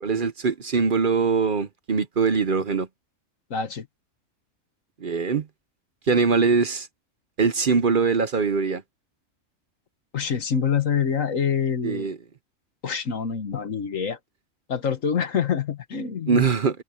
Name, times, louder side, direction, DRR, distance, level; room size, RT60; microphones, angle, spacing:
voice 1, 0.0-2.9 5.0-5.5 6.1-6.9 7.4-8.8 11.8-12.2 16.3-16.8, right 5 dB, 45° right, 0.8 m, -22 dB
voice 2, 3.5-3.9 10.1-12.1 12.8-14.2 14.7-16.5, left 7 dB, 85° left, 1.9 m, -26 dB
omnidirectional pair, 1.3 m